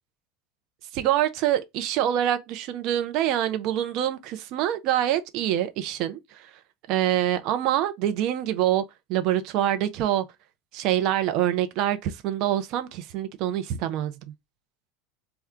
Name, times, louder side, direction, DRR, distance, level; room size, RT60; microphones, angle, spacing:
voice 1, 0.9-6.5 6.9-8.8 9.1-10.2 10.7-14.2, right 12 dB, 50° right, 0.6 m, -25 dB
4.3 x 2.3 x 3.5 m
figure-of-eight pair, 75°, 0 cm